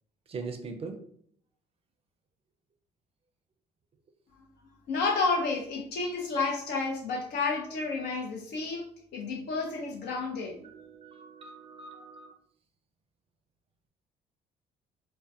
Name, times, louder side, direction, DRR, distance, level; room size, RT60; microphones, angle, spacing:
voice 1, 0.3-0.9 10.6-12.3, right 4 dB, 35° right, 5 dB, 0.4 m, -41 dB
voice 2, 4.9-8.8 9.1-10.5, left 4 dB, 75° left, 1 dB, 0.7 m, -30 dB
2.3 x 2.2 x 2.6 m, 0.64 s
cardioid pair, 110°, 17 cm